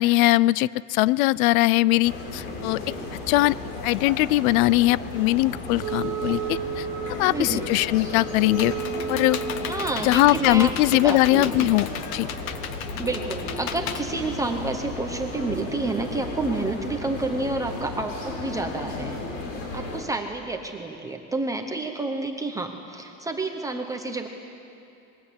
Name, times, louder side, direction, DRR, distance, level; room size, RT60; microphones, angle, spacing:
voice 1, 0.0-2.8 3.1-3.6 3.8-6.9 7.2-8.7 9.1-9.4 10.0-12.3, left 18 dB, 90° left, 21 dB, 0.6 m, -21 dB
sound 1, 2.0-20.0, left 2 dB, 65° left, 6.4 m, -34 dB
Wind instrument woodwind instrument, 5.8-9.9, right 7 dB, 35° right, 2.4 m, -33 dB
voice 2, 7.2-7.7 9.7-11.7 13.0-19.1 19.7-24.3, right 3 dB, 10° right, 3 dB, 0.9 m, -29 dB
Computer keyboard, 8.0-14.9, left 9 dB, 45° left, 1.2 m, -36 dB
27.0 x 22.0 x 8.7 m, 2.7 s
cardioid pair, 175°, 40 cm